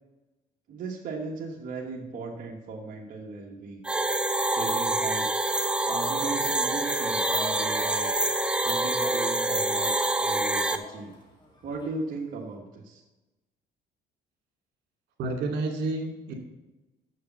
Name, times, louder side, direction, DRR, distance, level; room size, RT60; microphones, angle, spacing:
voice 1, 0.7-3.8 4.5-8.1 8.6-11.2 11.6-13.0, right 3 dB, 55° right, -2 dB, 1.4 m, -37 dB
sound 1, 3.8-10.8, right 2 dB, 5° right, 0.6 m, -26 dB
Shout, 6.8-11.9, left 1 dB, 25° left, 2.3 m, -42 dB
voice 2, 15.2-16.3, right 2 dB, 75° right, 1 dB, 2.3 m, -30 dB
7.1 x 6.6 x 6.9 m, 1.1 s
cardioid pair, 110°, 17 cm